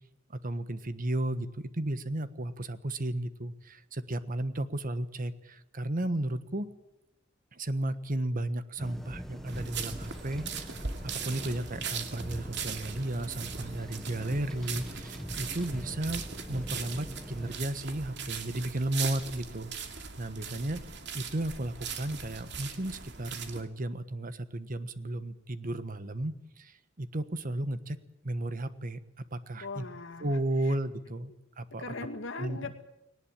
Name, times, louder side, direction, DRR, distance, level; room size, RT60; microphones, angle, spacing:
voice 1, 0.3-6.7 7.5-10.8 11.0-16.2 16.5-19.7 20.2-20.8 21.1-28.0 28.2-29.0 29.3-29.8 30.2-31.9 32.4-32.6, right 1 dB, 45° right, 12 dB, 1.3 m, -34 dB
sound 1, 8.8-17.6, equal, ahead, 0.9 m, -43 dB
sound 2, 9.5-23.6, right 6 dB, 65° right, 2.5 m, -40 dB
voice 2, 29.6-30.4 30.6-30.8 31.3-31.4 31.8-32.8, left 3 dB, 80° left, 6 dB, 2.3 m, -40 dB
20.5 x 19.0 x 8.8 m, 0.87 s
head